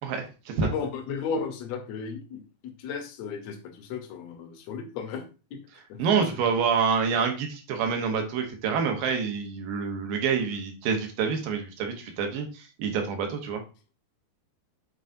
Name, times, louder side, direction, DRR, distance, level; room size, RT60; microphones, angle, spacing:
voice 1, 0.0-0.7 6.0-13.6, right 6 dB, 75° right, 4 dB, 2.7 m, -27 dB
voice 2, 0.6-5.2 5.5-5.6 5.9-6.0, left 5 dB, 75° left, 5 dB, 1.6 m, -34 dB
8.0 x 4.9 x 2.6 m, 0.33 s
omnidirectional pair, 4.2 m